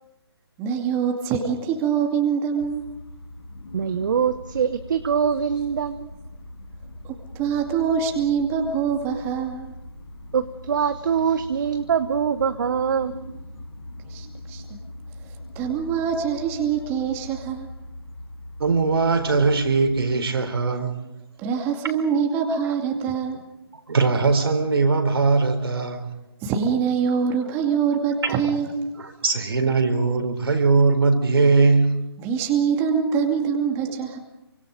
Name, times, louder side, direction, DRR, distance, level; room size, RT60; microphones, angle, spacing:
voice 1, 0.6-2.9 7.0-9.7 14.1-14.8 15.5-17.7 21.4-23.4 26.4-28.8 32.2-34.2, right 7 dB, 15° right, 2.4 m, -24 dB
sound 1, 2.6-20.2, left 1 dB, 75° left, 5.6 m, -41 dB
voice 2, 3.7-6.1 10.3-13.3, right 7 dB, 50° right, 1.1 m, -23 dB
voice 3, 18.6-21.0 23.9-26.1 28.2-28.4 29.0-32.0, right 4 dB, 65° right, 4.2 m, -20 dB
27.5 x 25.0 x 5.2 m
figure-of-eight pair, 150°, 14 cm